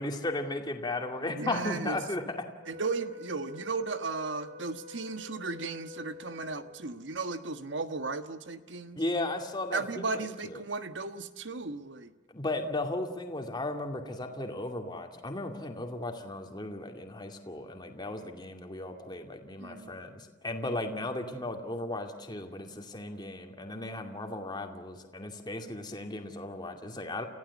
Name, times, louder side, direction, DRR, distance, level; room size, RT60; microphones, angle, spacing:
voice 1, 0.0-2.5 8.9-9.8 10.1-10.6 12.3-27.3, left 2 dB, 25° left, 4 dB, 2.3 m, -36 dB
voice 2, 1.3-2.0 2.7-9.0 9.7-12.1 19.6-20.0, right 3 dB, 90° right, 10 dB, 1.4 m, -35 dB
Wind instrument woodwind instrument, 2.6-7.0, left 5 dB, 55° right, 3.7 m, -48 dB
29.5 x 15.5 x 8.4 m, 1.3 s
head